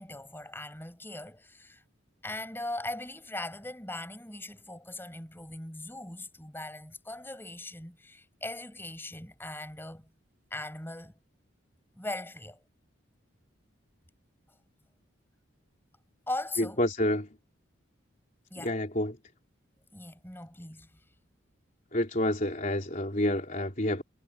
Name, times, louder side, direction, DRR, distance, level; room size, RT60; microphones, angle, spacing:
voice 1, 0.0-1.8 2.2-10.1 10.5-11.1 12.0-12.6 16.3-16.8 18.5-18.8 19.9-21.0, left 2 dB, 10° left, 7.0 m, -40 dB
voice 2, 16.6-17.3 18.6-19.2 21.9-24.0, left 1 dB, 40° left, 3.9 m, -28 dB
head